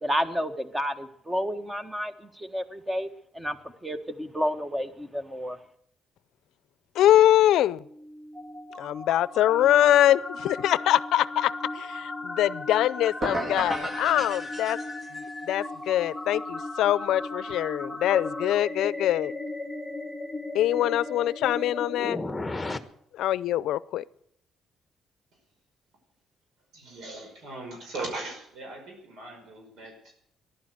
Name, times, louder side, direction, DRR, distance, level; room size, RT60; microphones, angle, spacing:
voice 1, 0.0-3.1 3.3-3.6 3.8-5.6, equal, 15° right, 10 dB, 1.5 m, -30 dB
voice 2, 6.9-7.8 8.8-14.8 15.1-19.3 20.5-22.2 23.1-24.0, left 12 dB, 85° left, 19 dB, 0.5 m, -23 dB
sound 1, 7.7-22.8, left 2 dB, 15° left, 1.2 m, -36 dB
sound 2, 13.2-15.3, right 1 dB, 35° right, 1.8 m, -33 dB
voice 3, 26.7-30.1, right 2 dB, 75° right, 2 dB, 5.3 m, -39 dB
14.5 x 11.5 x 7.9 m, 0.72 s
cardioid pair, 90°, 0 cm